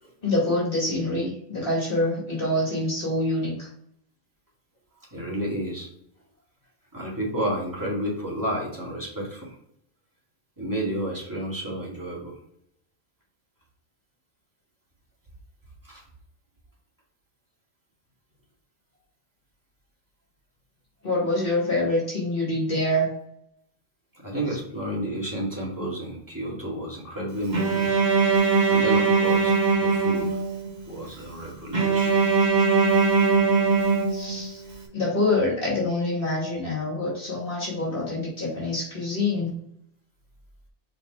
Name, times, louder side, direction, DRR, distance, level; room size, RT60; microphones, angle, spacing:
voice 1, 0.2-3.7 21.0-23.1 34.1-34.6 34.9-39.5, left 2 dB, 55° left, -4 dB, 2.2 m, -26 dB
voice 2, 5.1-5.9 6.9-9.6 10.6-12.4 15.8-16.0 24.1-28.0 28.7-30.4 30.9-32.2, right 1 dB, 20° right, -5 dB, 2.4 m, -31 dB
Bowed string instrument, 27.5-30.7 31.7-34.7, right 4 dB, 45° right, 1.6 m, -21 dB
5.2 x 4.2 x 4.8 m, 0.70 s
omnidirectional pair, 1.1 m